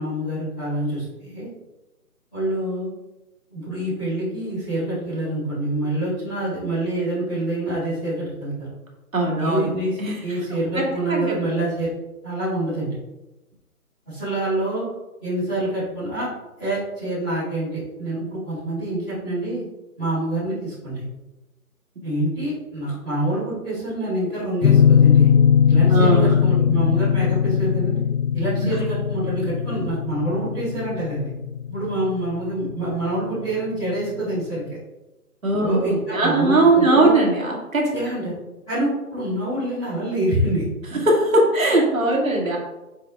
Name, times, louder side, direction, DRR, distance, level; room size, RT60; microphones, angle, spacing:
voice 1, 0.0-1.5 2.3-2.9 3.5-8.7 9.4-11.9 12.2-13.0 14.0-14.8 15.2-16.3 16.6-19.6 20.0-21.0 22.0-25.3 25.6-28.0 28.3-31.3 31.7-34.7 35.6-37.1 37.9-38.3 38.7-40.6, right 1 dB, 5° left, -22 dB, 1.4 m, -26 dB
voice 2, 9.1-9.6 10.0-10.2 10.8-10.9 11.1-11.4 25.9-26.4 35.4-37.9 40.9-42.6, right 2 dB, 60° right, -1 dB, 2.3 m, -19 dB
sound 1, 24.6-33.3, left 8 dB, 75° left, 0.7 m, -19 dB
7.5 x 5.1 x 3.5 m, 1.0 s
hypercardioid pair, 180°, 45 cm